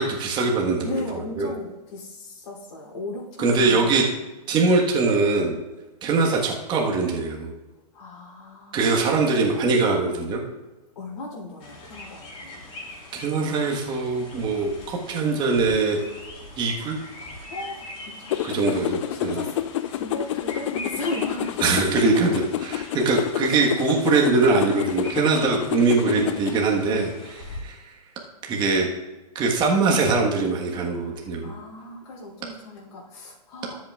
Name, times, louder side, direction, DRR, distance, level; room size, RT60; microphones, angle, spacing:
voice 1, 0.0-1.5 3.4-4.0 4.5-5.6 6.0-7.5 8.7-10.4 13.1-16.0 16.6-17.0 18.4-19.4 21.6-27.8 28.4-28.9 29.3-31.5, right 3 dB, 20° right, 0 dB, 1.5 m, -22 dB
voice 2, 0.8-4.1 7.9-9.1 10.9-12.6 17.5-18.8 19.1-19.5 19.9-21.9 31.1-33.8, left 1 dB, 65° left, -2 dB, 3.3 m, -36 dB
sound 1, 11.6-27.6, left 2 dB, 30° left, 3.4 m, -42 dB
sound 2, 18.3-26.6, left 12 dB, 50° left, 0.4 m, -29 dB
13.0 x 8.1 x 2.5 m, 1.1 s
hypercardioid pair, 130°, 21 cm